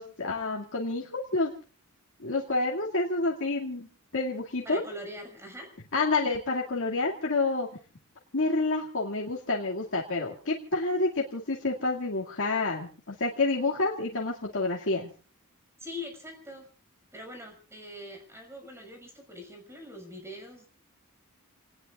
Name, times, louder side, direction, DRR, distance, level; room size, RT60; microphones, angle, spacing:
voice 1, 0.0-1.5 2.2-4.8 5.9-7.7 8.3-15.1, left 3 dB, 60° left, -3 dB, 2.3 m, -29 dB
voice 2, 4.6-5.7 15.8-16.6 17.1-20.7, left 1 dB, 10° right, 3 dB, 6.0 m, -43 dB
29.5 x 19.5 x 2.5 m, 0.38 s
head